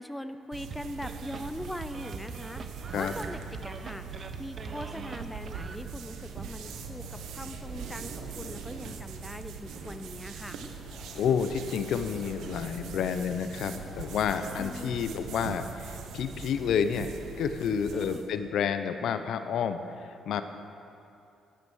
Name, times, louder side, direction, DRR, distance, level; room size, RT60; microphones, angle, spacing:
voice 1, 0.0-4.0 4.4-10.6 14.6-15.0 17.9-18.3, left 1 dB, 5° left, 10 dB, 0.6 m, -41 dB
sound 1, 0.5-18.3, right 6 dB, 80° right, 1.0 m, -42 dB
sound 2, 0.7-5.8, right 4 dB, 45° right, 0.9 m, -42 dB
sound 3, 6.1-16.7, left 1 dB, 35° left, 3.6 m, -50 dB
voice 2, 11.1-17.1 17.4-19.8 20.3-20.4, left 7 dB, 75° left, 9 dB, 0.7 m, -29 dB
12.0 x 11.0 x 6.3 m, 2.7 s
cardioid pair, 90°, 0 cm